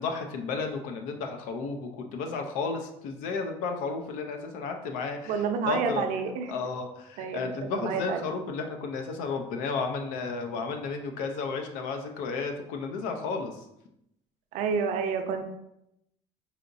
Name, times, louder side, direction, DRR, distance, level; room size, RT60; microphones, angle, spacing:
voice 1, 0.0-6.1 6.5-13.6, left 4 dB, 80° left, 5 dB, 0.5 m, -33 dB
voice 2, 5.3-6.5 7.2-8.2 14.5-15.4, right 6 dB, 70° right, 6 dB, 0.5 m, -29 dB
4.9 x 2.9 x 2.5 m, 0.81 s
supercardioid pair, 105°, 13 cm